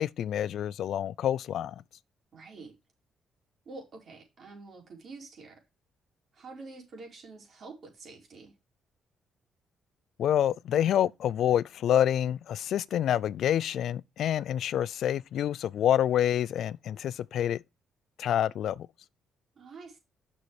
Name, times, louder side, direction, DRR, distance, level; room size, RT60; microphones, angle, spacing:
voice 1, 0.0-1.7 10.2-17.6 18.2-18.9, left 10 dB, 70° left, 0.4 m, -27 dB
voice 2, 2.3-2.8 3.6-5.6 6.3-8.5 19.5-20.0, right 3 dB, 55° right, 4.7 m, -47 dB
6.8 x 6.4 x 4.8 m
cardioid pair, 90°, 0 cm